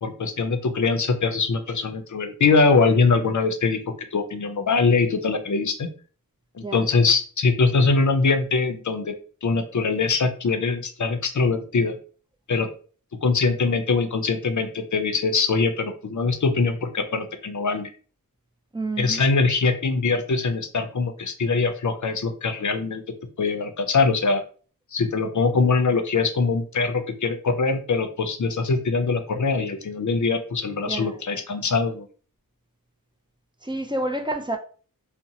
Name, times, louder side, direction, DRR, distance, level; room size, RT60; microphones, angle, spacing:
voice 1, 0.0-3.8 4.1-5.9 6.5-9.1 9.4-11.9 12.5-12.7 13.2-17.9 19.0-23.0 23.4-24.4 24.9-32.1, left 4 dB, 55° left, 0.5 m, -22 dB
voice 2, 18.7-19.2 30.9-31.2 33.6-34.6, right 2 dB, 15° right, 0.4 m, -29 dB
2.8 x 2.0 x 2.6 m
wide cardioid pair, 50°, 35 cm